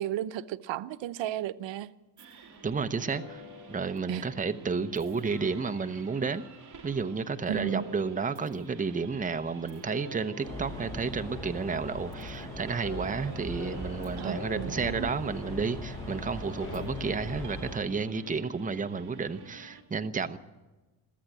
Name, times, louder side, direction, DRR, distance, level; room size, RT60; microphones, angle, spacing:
voice 1, 0.0-1.9 4.1-4.3 7.5-7.9 14.2-15.1, right 12 dB, 90° right, 0.9 m, -34 dB
sound 1, 2.2-19.8, right 4 dB, 45° right, 3.3 m, -51 dB
sound 2, 2.6-12.3 12.8-18.8, left 2 dB, 45° left, 6.2 m, -48 dB
voice 2, 2.6-3.4 3.7-6.4 6.8-20.4, right 5 dB, 20° right, 0.9 m, -31 dB
sound 3, 10.4-17.8, left 1 dB, 5° left, 7.5 m, -39 dB
22.0 x 14.5 x 9.0 m
cardioid pair, 140°, 43 cm